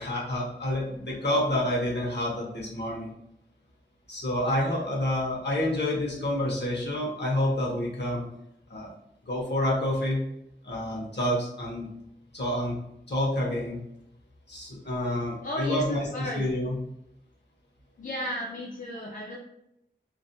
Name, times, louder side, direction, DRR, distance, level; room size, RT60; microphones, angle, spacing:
voice 1, 0.0-3.1 4.1-8.2 8.7-8.9 9.2-10.2 10.6-11.9 12.3-12.8 13.1-13.8 14.5-16.0 16.4-16.8, left 1 dB, 65° left, -4 dB, 0.8 m, -28 dB
voice 2, 15.4-16.5 18.0-19.4, left 1 dB, 45° left, -2 dB, 0.4 m, -34 dB
2.5 x 2.1 x 2.6 m, 0.79 s
wide cardioid pair, 50°, 19 cm